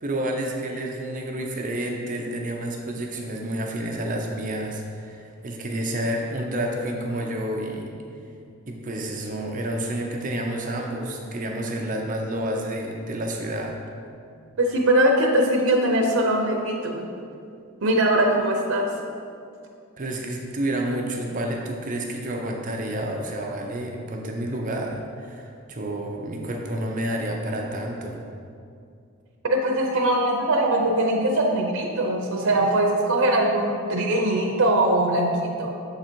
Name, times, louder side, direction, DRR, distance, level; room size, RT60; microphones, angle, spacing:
voice 1, 0.0-7.9 8.7-13.8 20.0-28.2, right 1 dB, 40° right, 1 dB, 0.6 m, -29 dB
voice 2, 14.6-17.1 17.8-18.9 29.4-35.7, right 1 dB, 80° right, 1 dB, 0.6 m, -21 dB
7.0 x 3.9 x 4.5 m, 2.4 s
head